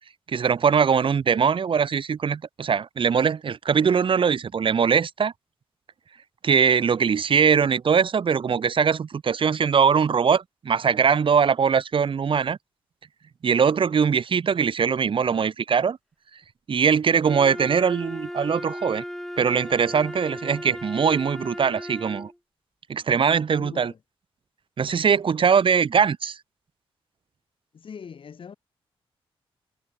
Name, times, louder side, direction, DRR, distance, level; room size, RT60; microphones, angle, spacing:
voice 1, 0.3-5.3 6.4-12.6 13.4-16.0 16.7-19.0 19.4-22.3 22.9-23.9 24.8-26.4, right 6 dB, 60° right, 3.7 m, -21 dB
Wind instrument woodwind instrument, 17.2-22.4, equal, 5° left, 7.3 m, -36 dB
voice 2, 23.5-24.0 27.7-28.5, left 6 dB, 60° left, 7.6 m, -41 dB
cardioid pair, 75°, 10 cm